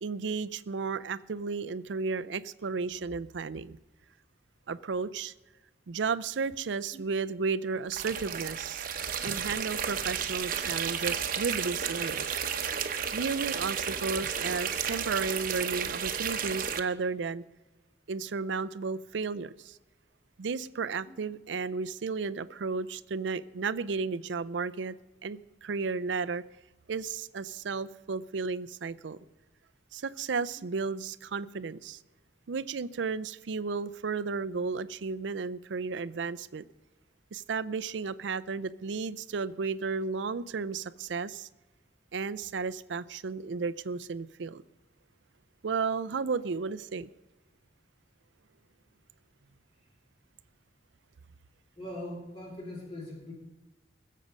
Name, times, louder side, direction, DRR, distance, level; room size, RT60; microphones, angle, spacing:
voice 1, 0.0-3.8 4.7-5.3 5.9-8.9 9.2-12.4 13.1-17.4 18.1-19.8 20.4-24.9 25.2-26.4 26.9-29.2 29.9-32.0 32.5-36.6 37.3-41.5 42.1-44.6 45.6-47.1, right 4 dB, 80° right, 17 dB, 0.5 m, -33 dB
sound 1, 7.9-16.8, right 7 dB, 50° right, 0.9 m, -32 dB
voice 2, 51.8-53.3, left 1 dB, 35° left, -2 dB, 2.7 m, -41 dB
20.5 x 7.5 x 5.4 m, 1.1 s
head